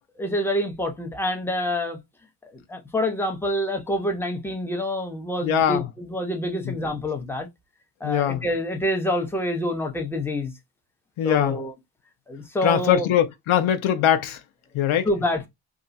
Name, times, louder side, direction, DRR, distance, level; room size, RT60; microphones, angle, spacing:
voice 1, 0.2-2.0 2.5-7.5 8.0-10.5 11.2-11.7 12.3-13.1 15.0-15.5, left 1 dB, 5° left, 0.7 m, -27 dB
voice 2, 5.4-5.9 6.6-6.7 8.0-8.4 11.2-11.6 12.6-14.4 14.7-15.1, left 10 dB, 75° left, 0.6 m, -21 dB
2.4 x 2.2 x 3.9 m
cardioid pair, 85°, 49 cm